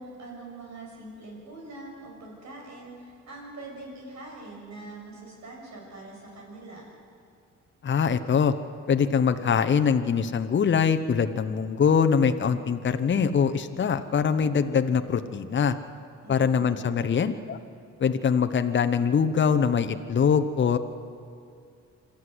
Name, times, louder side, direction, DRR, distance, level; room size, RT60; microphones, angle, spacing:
voice 1, 0.0-6.9 16.2-17.1, right 2 dB, 65° right, -1 dB, 6.7 m, -43 dB
voice 2, 7.8-8.5 8.9-15.8 16.3-17.6 18.0-20.8, left 6 dB, 40° left, 9 dB, 1.0 m, -23 dB
26.5 x 13.0 x 8.0 m, 2.4 s
cardioid pair, 90°, 30 cm